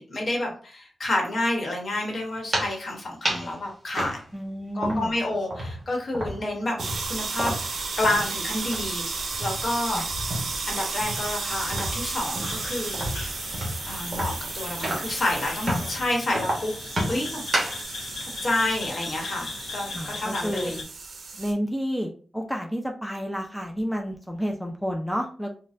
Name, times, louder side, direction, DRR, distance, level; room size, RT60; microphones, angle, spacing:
voice 1, 0.0-4.2 4.8-6.8 7.1-10.0 10.7-13.3 13.9-16.7 17.1-17.4 18.2-20.8, left 2 dB, 55° left, 0 dB, 1.1 m, -29 dB
sound 1, 2.3-2.8 3.2-3.5 3.9-5.2 5.5-8.4 8.6-8.9 9.3-10.6 11.0-15.2 15.6-16.0 16.3-17.8, right 1 dB, 35° right, 1.2 m, -31 dB
voice 2, 4.3-5.1 9.9-10.1 19.9-20.7 21.3-25.6, equal, ahead, 2 dB, 0.4 m, -30 dB
sound 2, 6.8-21.5, right 4 dB, 70° right, 0.6 m, -34 dB
sound 3, 12.4-20.8, left 4 dB, 75° left, 0.6 m, -39 dB
4.1 x 2.2 x 2.5 m, 0.41 s
wide cardioid pair, 120°, 0 cm